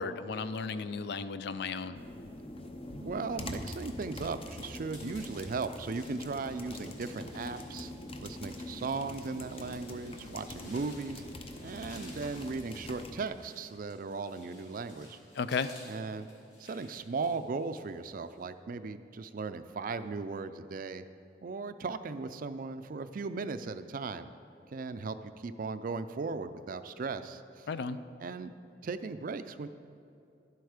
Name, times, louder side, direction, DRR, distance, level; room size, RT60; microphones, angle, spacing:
voice 1, 0.0-2.0 15.3-15.7 27.7-28.0, left 5 dB, 65° left, 12 dB, 0.4 m, -34 dB
sound 1, 1.9-13.3, left 1 dB, 30° left, 0.7 m, -44 dB
voice 2, 3.0-7.9 8.2-11.2 11.6-15.2 15.9-16.3 16.6-21.1 21.4-24.3 24.7-27.7 28.2-28.5 28.8-29.7, right 4 dB, 50° right, 11 dB, 0.4 m, -37 dB
sound 2, 3.9-18.4, left 1 dB, 80° left, 2.9 m, -56 dB
11.0 x 8.0 x 4.9 m, 2.6 s
head